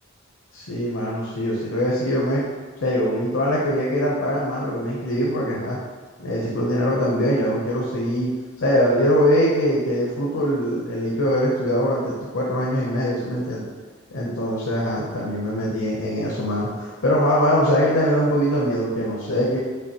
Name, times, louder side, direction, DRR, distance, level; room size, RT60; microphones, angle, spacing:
voice 1, 0.5-2.4 2.8-5.8 6.2-8.3 8.6-13.6 14.1-19.6, equal, 70° left, -4 dB, 0.7 m, -22 dB
5.4 x 3.3 x 2.9 m, 1.4 s
head